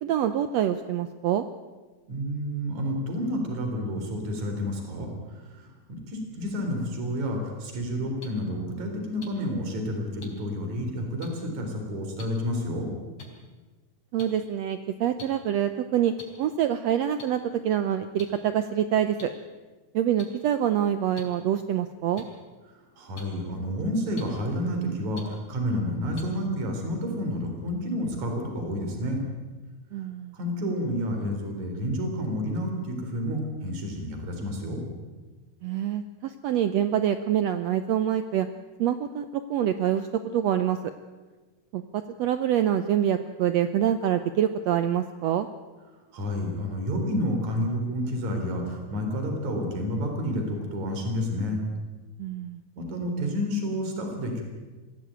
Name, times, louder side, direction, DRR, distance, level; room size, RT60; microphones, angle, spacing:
voice 1, 0.0-1.4 14.1-16.1 16.4-19.3 19.9-22.2 29.9-30.3 35.6-38.5 38.8-39.2 39.5-40.8 41.7-45.5 52.2-52.6, right 10 dB, 75° right, 10 dB, 1.5 m, -26 dB
voice 2, 2.1-5.1 5.6-12.9 23.0-29.2 30.3-34.8 46.1-51.6 52.8-54.4, equal, 55° right, 3 dB, 5.1 m, -30 dB
sound 1, 8.2-8.3 9.2-9.3 10.2-10.3 11.2-11.3 12.2-12.3 13.2-13.3 14.2-14.3 15.2-15.3 16.2-16.3 17.2-17.3 18.2-18.3 19.2-19.3 20.2-20.3 21.2-21.3 22.2-22.3 23.2-23.3 24.2-24.3 25.2-25.3 26.2-26.3, left 4 dB, 50° left, 4.9 m, -42 dB
23.0 x 16.0 x 9.1 m, 1.3 s
omnidirectional pair, 3.9 m